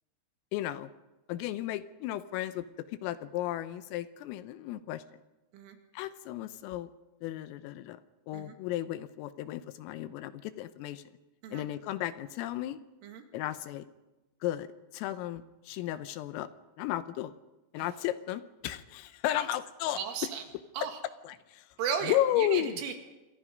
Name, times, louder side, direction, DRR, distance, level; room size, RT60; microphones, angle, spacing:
voice 1, 0.5-0.9 1.3-2.7 3.0-5.0 5.9-6.9 7.2-8.0 8.3-11.0 11.5-12.8 13.3-13.9 14.4-16.5 16.8-17.3 17.7-20.0 21.2-21.7 22.0-22.8, left 13 dB, 90° left, 12 dB, 3.7 m, -34 dB
voice 2, 19.9-20.4 20.7-20.9 21.8-22.9, right 7 dB, 75° right, 5 dB, 4.7 m, -35 dB
28.5 x 25.0 x 5.3 m, 1.1 s
omnidirectional pair, 5.8 m